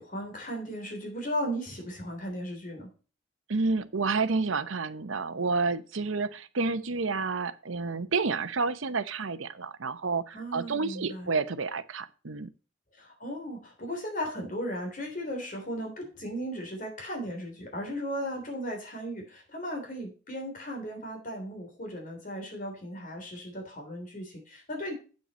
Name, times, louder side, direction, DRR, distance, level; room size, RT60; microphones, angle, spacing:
voice 1, 0.0-2.9 10.3-11.3 13.0-24.9, equal, 40° left, 3.4 m, -36 dB
voice 2, 3.5-12.5, right 4 dB, 75° right, 0.8 m, -30 dB
8.5 x 7.7 x 4.2 m
head